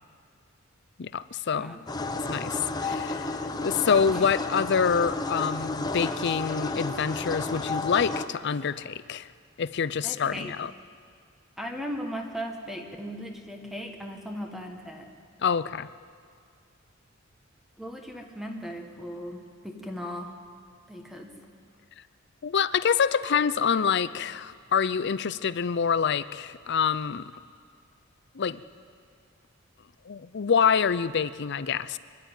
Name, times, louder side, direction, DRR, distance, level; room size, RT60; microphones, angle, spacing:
voice 1, 1.0-1.8 2.3-9.3 9.6-10.7 15.4-15.9 22.4-27.2 28.3-28.6 30.1-32.0, left 6 dB, 55° left, 16 dB, 0.5 m, -26 dB
voice 2, 1.5-1.8 4.1-4.2 10.0-10.5 11.6-15.1 17.8-20.3 20.9-21.4, equal, ahead, 2 dB, 1.5 m, -37 dB
sound 1, 1.9-8.3, left 3 dB, 20° left, 0.9 m, -32 dB
24.5 x 11.5 x 9.0 m, 2.2 s
head